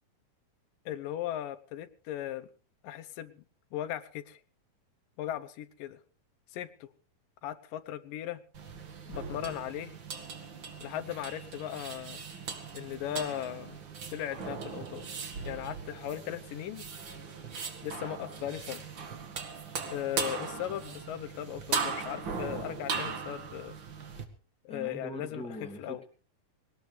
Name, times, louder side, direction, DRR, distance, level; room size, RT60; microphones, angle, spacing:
voice 1, 0.9-2.5 2.8-3.4 3.7-4.4 5.2-6.0 6.5-6.9 7.4-8.4 9.1-9.9 10.8-12.2 12.7-13.8 14.1-15.1 15.5-16.9 17.8-18.8 19.9-23.8 24.7-25.4 25.8-26.0, left 12 dB, 75° left, 14 dB, 2.5 m, -37 dB
sound 1, 8.5-24.2, right 5 dB, 40° right, 2.0 m, -39 dB
voice 2, 24.7-26.1, right 1 dB, ahead, 4 dB, 1.9 m, -42 dB
21.5 x 19.0 x 3.4 m, 0.39 s
omnidirectional pair, 4.0 m